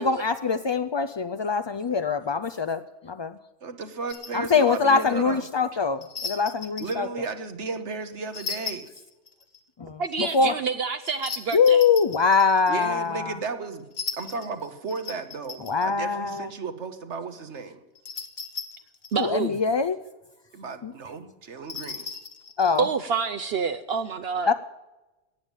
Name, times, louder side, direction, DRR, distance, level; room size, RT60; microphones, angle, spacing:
voice 1, 0.0-3.4 4.3-7.1 9.8-10.6 11.5-13.4 15.6-16.5 19.2-20.0 20.8-20.9 22.6-22.9 24.5-24.6, left 5 dB, 40° left, 10 dB, 0.4 m, -23 dB
voice 2, 3.6-5.4 6.8-8.9 12.7-13.9 14.2-17.8 20.5-22.1, right 4 dB, 90° right, 9 dB, 1.6 m, -34 dB
sound 1, 4.1-4.4 6.0-7.1 8.3-9.6 11.0-13.0 13.9-15.9 18.0-19.2 21.6-22.9, left 5 dB, 65° left, 1.5 m, -37 dB
voice 3, 10.0-11.8 19.1-19.6 22.8-24.5, right 5 dB, 65° right, 10 dB, 0.9 m, -28 dB
18.0 x 7.3 x 9.1 m, 1.0 s
omnidirectional pair, 1.2 m